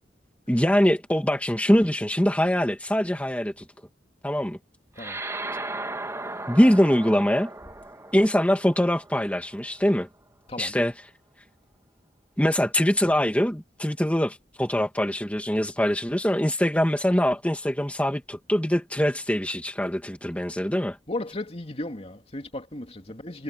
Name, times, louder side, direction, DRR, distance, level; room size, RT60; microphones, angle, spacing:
voice 1, 0.5-3.5 4.2-4.6 6.5-7.5 8.1-10.1 10.6-10.9 12.4-21.0, equal, 10° left, 2.2 m, -23 dB
sound 1, 5.0-9.7, right 2 dB, 15° right, 2.8 m, -36 dB
voice 2, 21.1-23.4, left 1 dB, 35° left, 2.8 m, -35 dB
head